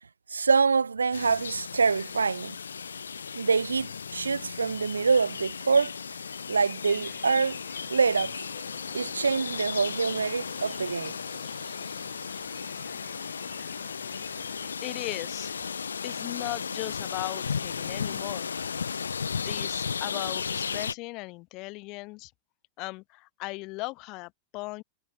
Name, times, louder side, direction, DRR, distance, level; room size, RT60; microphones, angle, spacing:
voice 1, 0.3-2.6 3.3-6.0 6.5-7.6 7.9-8.5 8.9-11.2, right 5 dB, 75° right, 0.6 m, -25 dB
sound 1, 1.1-20.9, left 6 dB, 70° left, 1.7 m, -35 dB
sound 2, 6.9-14.7, right 12 dB, 30° right, 3.3 m, -55 dB
voice 2, 14.0-14.4 14.8-15.7 16.0-18.5 19.4-22.3 22.8-24.8, left 24 dB, 40° left, 0.5 m, -38 dB
figure-of-eight pair, 90°, 0 cm